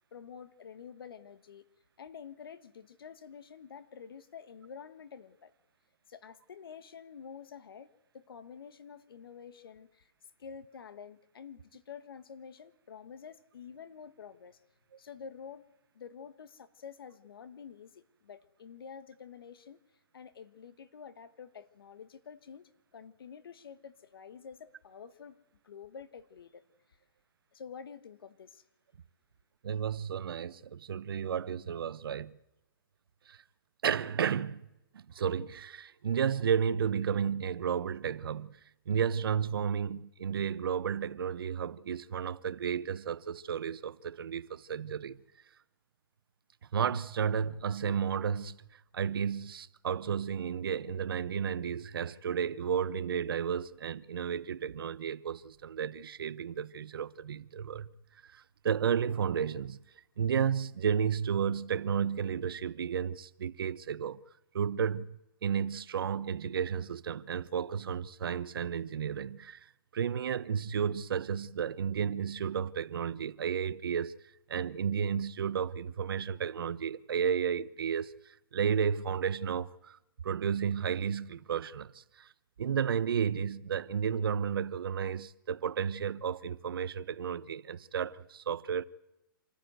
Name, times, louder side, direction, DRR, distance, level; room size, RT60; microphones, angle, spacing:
voice 1, 0.1-1.7 2.0-5.5 6.1-10.1 10.4-14.6 15.0-15.7 15.9-19.8 20.1-25.4 25.6-26.6 27.5-28.6, left 7 dB, 80° left, 1.4 m, -49 dB
voice 2, 29.6-32.4 33.3-33.4 33.8-34.7 34.9-38.6 38.9-45.2 46.7-57.9 58.2-59.8 60.2-64.2 64.5-69.6 69.9-74.2 74.5-80.0 80.2-82.3 82.6-88.9, right 7 dB, 80° right, 0.8 m, -32 dB
26.5 x 14.0 x 8.0 m
hypercardioid pair, 150°, 12 cm